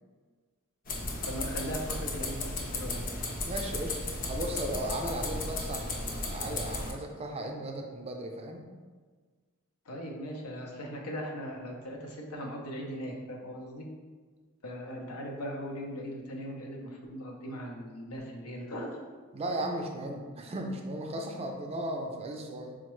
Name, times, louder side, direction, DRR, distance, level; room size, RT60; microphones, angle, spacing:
sound 1, 0.9-6.9, left 2 dB, 40° left, 0.5 m, -35 dB
voice 1, 1.2-3.0 9.9-13.9 14.6-19.0, equal, 85° left, 1 dB, 0.6 m, -39 dB
voice 2, 3.4-8.7 19.3-22.8, right 1 dB, 30° right, 3 dB, 0.3 m, -36 dB
4.5 x 2.1 x 3.0 m, 1.5 s
head